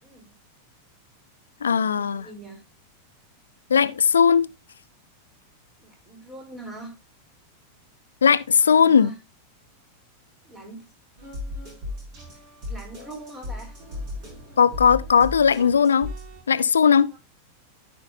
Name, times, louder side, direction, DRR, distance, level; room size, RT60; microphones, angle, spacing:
voice 1, 0.0-0.3 1.9-2.6 5.8-7.0 8.6-9.2 10.4-10.9 12.3-13.8 17.1-17.2, right 2 dB, 15° right, 3.3 m, -42 dB
voice 2, 1.6-2.3 3.7-4.5 8.2-9.1 14.6-16.1 16.5-17.1, left 7 dB, 70° left, 0.4 m, -18 dB
sound 1, 11.2-16.4, left 2 dB, 40° right, 6.4 m, -36 dB
13.5 x 5.6 x 2.6 m
figure-of-eight pair, 90°, 0 cm